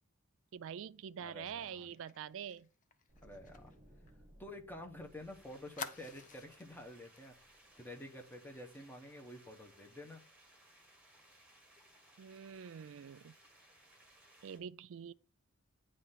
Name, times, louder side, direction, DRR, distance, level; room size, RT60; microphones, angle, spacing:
voice 1, 0.5-2.7 12.2-13.3 14.4-15.1, right 8 dB, 65° right, 0.4 m, -45 dB
voice 2, 1.2-1.9 3.2-3.7 4.4-10.2, left 1 dB, 10° left, 0.9 m, -50 dB
Fire, 1.5-4.9 5.2-5.3 5.8-6.7 7.1-7.3 7.6-7.9, left 6 dB, 40° left, 0.7 m, -50 dB
sound 1, 3.1-8.2 8.5-8.7, right 1 dB, 25° right, 1.4 m, -63 dB
sound 2, 4.9-14.6, right 1 dB, 5° right, 2.0 m, -64 dB
9.2 x 3.3 x 5.6 m
head